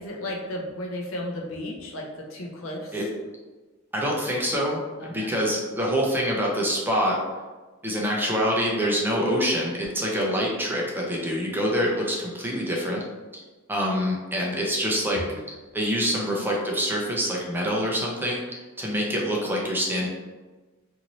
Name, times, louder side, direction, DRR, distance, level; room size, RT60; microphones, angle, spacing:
voice 1, 0.0-2.9 5.0-5.3 15.2-15.4, left 1 dB, 85° left, 0 dB, 0.6 m, -34 dB
voice 2, 3.9-4.8 5.1-7.2 7.8-13.0 13.3-13.4 13.7-15.2 15.7-20.1, equal, 10° right, -3 dB, 0.5 m, -25 dB
2.7 x 2.6 x 2.9 m, 1.3 s
head